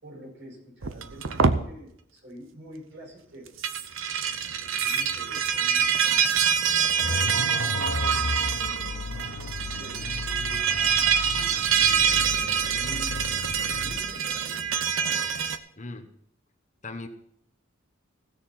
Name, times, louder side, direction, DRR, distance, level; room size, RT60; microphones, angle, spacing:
voice 1, 0.0-3.5 3.9-4.0 4.4-6.4 7.0-8.2 8.7-10.7 11.3-13.2 13.8-14.7 14.9-15.2, equal, 60° right, -2 dB, 5.5 m, -47 dB
sound 1, 0.8-1.6 3.5-15.6, right 7 dB, 75° right, 0.8 m, -25 dB
sound 2, 7.0-14.0, left 3 dB, 65° left, 0.7 m, -35 dB
voice 2, 15.8-16.1 16.8-17.1, left 3 dB, 40° left, 7 dB, 1.0 m, -37 dB
16.0 x 6.8 x 5.7 m, 0.70 s
head